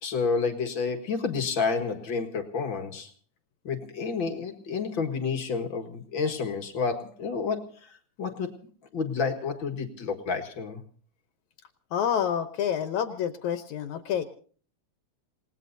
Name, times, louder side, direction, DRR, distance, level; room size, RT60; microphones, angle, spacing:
voice 1, 0.0-3.1 3.6-8.6 8.9-10.8, left 5 dB, 45° left, 4 dB, 2.1 m, -30 dB
voice 2, 11.9-14.3, left 9 dB, 75° left, 8 dB, 2.3 m, -28 dB
28.5 x 18.5 x 2.7 m, 0.44 s
omnidirectional pair, 3.4 m